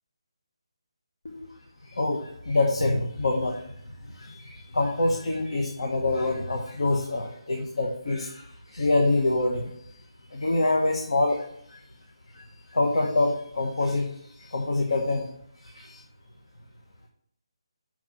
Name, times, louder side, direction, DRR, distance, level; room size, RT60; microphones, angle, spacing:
voice 1, 2.5-3.6 4.2-8.4 8.7-9.7 10.3-11.4 12.7-14.1 14.5-15.3 15.7-16.0, left 2 dB, 80° left, 1 dB, 1.3 m, -25 dB
6.0 x 4.7 x 5.9 m, 0.68 s
hypercardioid pair, 165°, 3 cm